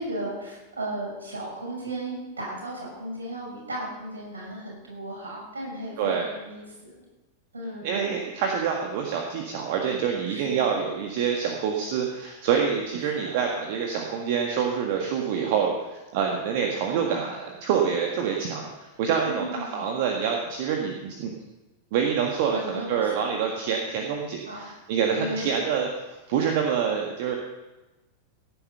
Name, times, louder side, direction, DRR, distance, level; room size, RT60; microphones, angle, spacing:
voice 1, 0.0-6.9 7.5-8.1 10.3-10.7 13.2-13.4 19.2-19.8 22.5-23.4 24.4-24.6 25.1-25.6, right 1 dB, 70° right, -2 dB, 6.4 m, -35 dB
voice 2, 7.8-21.3 21.9-25.9 26.3-27.3, right 7 dB, 50° right, 1 dB, 1.7 m, -26 dB
16.5 x 9.5 x 5.6 m, 1.1 s
figure-of-eight pair, 90°, 0 cm